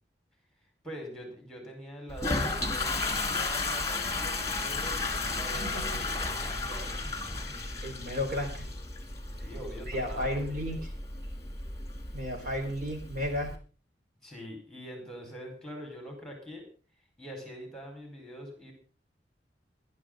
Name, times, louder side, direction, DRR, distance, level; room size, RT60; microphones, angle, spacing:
voice 1, 0.8-7.5 9.4-10.4 14.2-16.6 17.2-18.7, equal, 5° left, 2 dB, 4.6 m, -44 dB
Toilet flush, 2.1-13.5, left 3 dB, 20° left, 2.6 m, -34 dB
voice 2, 5.5-6.0 7.8-8.7 9.6-10.8 12.1-13.5, left 1 dB, 50° right, 3 dB, 4.8 m, -33 dB
20.0 x 11.5 x 3.9 m, 0.37 s
head